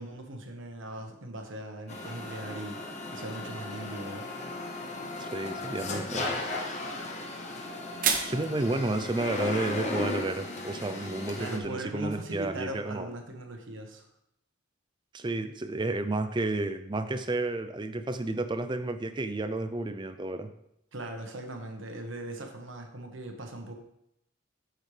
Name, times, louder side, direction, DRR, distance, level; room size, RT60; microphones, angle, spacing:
voice 1, 0.0-2.8 3.1-4.2 11.4-14.1 20.9-23.7, right 1 dB, 70° right, 3 dB, 1.2 m, -39 dB
sound 1, 1.9-11.6, left 2 dB, 35° left, 0.8 m, -36 dB
voice 2, 5.2-6.4 8.2-13.1 15.1-20.5, right 2 dB, 20° right, 9 dB, 0.4 m, -31 dB
sound 2, 6.4-12.3, right 6 dB, 40° right, 0.9 m, -37 dB
8.5 x 6.5 x 3.3 m, 0.78 s
head